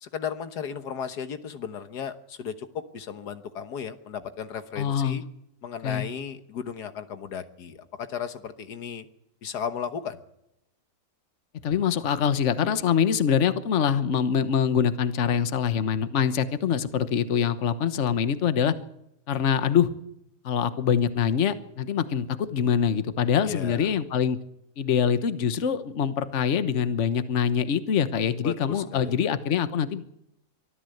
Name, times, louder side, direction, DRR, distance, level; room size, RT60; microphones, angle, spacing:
voice 1, 0.0-2.7 2.9-5.2 5.6-9.1 9.4-10.2 23.5-23.9 28.4-29.2, left 7 dB, 90° left, 10 dB, 1.8 m, -35 dB
voice 2, 4.8-5.2 5.8-6.1 11.6-18.7 19.3-19.9 20.4-24.4 24.8-30.0, left 8 dB, 50° left, 12 dB, 1.3 m, -24 dB
24.0 x 14.0 x 7.9 m, 0.82 s
omnidirectional pair, 1.7 m